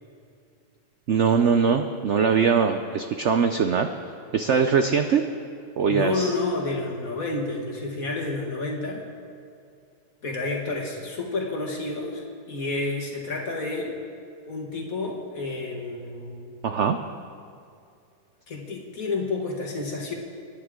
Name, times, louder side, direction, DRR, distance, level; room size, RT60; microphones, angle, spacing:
voice 1, 1.1-3.9 4.3-5.2 5.8-6.3 16.6-17.0, right 6 dB, 70° right, 7 dB, 0.7 m, -21 dB
voice 2, 5.9-9.0 10.2-14.0 14.4-16.5 18.5-20.1, left 3 dB, 50° left, 0 dB, 2.2 m, -30 dB
26.0 x 10.5 x 3.8 m, 2.4 s
omnidirectional pair, 1.9 m